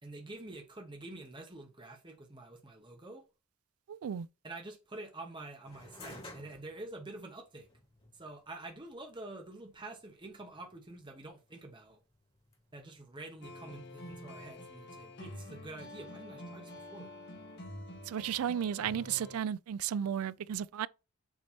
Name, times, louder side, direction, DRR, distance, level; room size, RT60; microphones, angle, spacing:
voice 1, 0.0-3.2 4.4-7.7 8.1-12.0 12.7-17.1, right 2 dB, 20° right, 1.2 m, -47 dB
voice 2, 3.9-4.3 18.1-20.9, right 9 dB, 75° right, 0.4 m, -34 dB
sound 1, 5.6-14.8, left 2 dB, 25° left, 1.8 m, -56 dB
sound 2, 13.4-19.4, left 1 dB, 50° left, 1.6 m, -47 dB
7.2 x 3.2 x 4.2 m
head